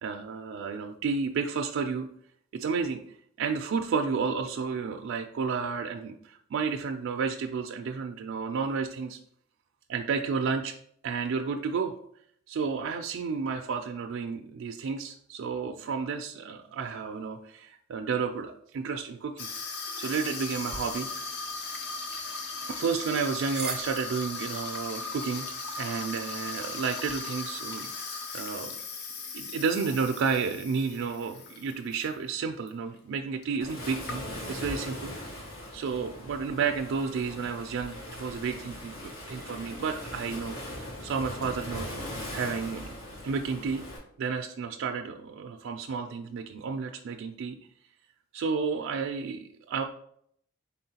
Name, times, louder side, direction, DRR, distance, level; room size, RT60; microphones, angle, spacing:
voice 1, 0.0-2.1 2.5-3.0 3.4-9.2 9.9-10.7 11.0-11.9 12.5-19.5 20.0-21.1 22.6-25.5 25.8-28.8 29.3-34.2 34.5-35.3 35.7-41.9 42.3-43.9 44.2-47.6 48.3-49.8, right 5 dB, 65° right, 4 dB, 0.3 m, -31 dB
Water tap faucet / Sink (filling or washing), 19.4-32.1 32.4-32.7 33.4-33.5 33.7-34.6, left 4 dB, 55° left, 0.6 m, -38 dB
sound 1, 20.7-27.2, right 3 dB, 5° right, 0.5 m, -46 dB
Waves surf, 33.6-44.0, left 1 dB, 80° left, 1.4 m, -40 dB
4.1 x 3.7 x 2.8 m, 0.66 s
head